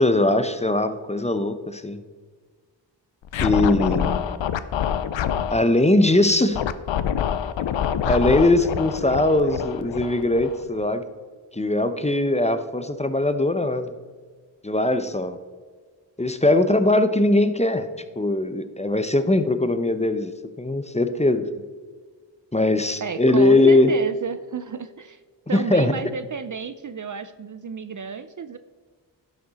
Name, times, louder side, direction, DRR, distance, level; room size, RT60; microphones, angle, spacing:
voice 1, 0.0-2.0 3.4-4.2 5.5-6.6 8.1-11.0 11.5-13.9 14.6-15.4 16.2-17.9 18.2-21.4 22.5-23.9 25.5-25.9, left 2 dB, 15° left, 10 dB, 0.7 m, -20 dB
Scratching (performance technique), 3.3-5.6 6.5-10.9, left 9 dB, 80° left, 0.6 m, -26 dB
voice 2, 23.0-25.2 25.5-28.6, right 6 dB, 45° right, 11 dB, 0.5 m, -32 dB
11.0 x 6.5 x 4.1 m, 1.6 s
cardioid pair, 50°, 45 cm